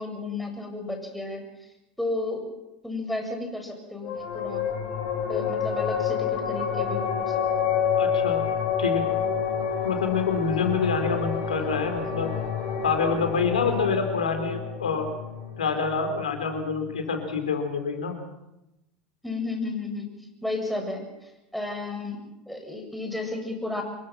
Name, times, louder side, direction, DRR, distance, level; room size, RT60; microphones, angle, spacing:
voice 1, 0.0-1.4 2.0-2.5 2.8-4.7 5.3-7.7 13.6-13.9 19.2-20.1 20.4-23.8, left 2 dB, ahead, 3 dB, 7.4 m, -33 dB
sound 1, 4.0-16.9, left 7 dB, 55° left, 7.7 m, -28 dB
voice 2, 8.0-8.5 8.8-9.1 9.8-12.3 12.8-15.0 15.6-18.2, left 5 dB, 80° left, 6 dB, 4.5 m, -27 dB
26.5 x 23.0 x 6.0 m, 0.93 s
figure-of-eight pair, 80°, 4 cm